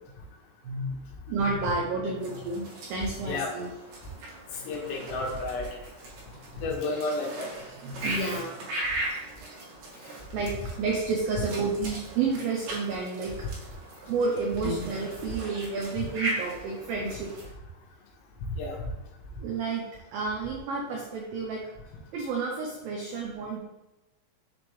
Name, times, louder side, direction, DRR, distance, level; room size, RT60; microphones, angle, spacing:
voice 1, 0.6-3.7 4.6-4.7 6.5-6.6 7.8-8.7 10.3-13.5 14.1-17.3 19.4-21.7 22.1-23.6, right 4 dB, 90° right, -1 dB, 2.0 m, -31 dB
sound 1, 2.2-17.5, right 1 dB, 60° right, 2.5 m, -39 dB
voice 2, 3.3-3.6 4.7-5.7 6.6-7.5 14.6-14.8 18.6-18.8, left 2 dB, 75° left, 0 dB, 2.9 m, -31 dB
6.9 x 4.3 x 3.2 m, 1.0 s
omnidirectional pair, 5.2 m